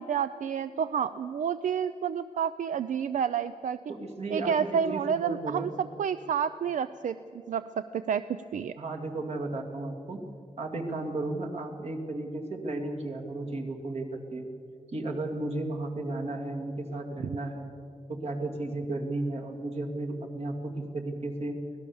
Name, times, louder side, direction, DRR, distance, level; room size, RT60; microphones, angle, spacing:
voice 1, 0.0-3.8 4.3-8.7, right 7 dB, 85° right, 13 dB, 0.5 m, -30 dB
voice 2, 3.9-5.7 8.7-10.2 10.6-14.5 14.9-17.7 18.1-21.6, right 2 dB, 55° right, 2 dB, 2.5 m, -34 dB
25.0 x 17.5 x 7.1 m, 2.4 s
wide cardioid pair, 175°, 13 cm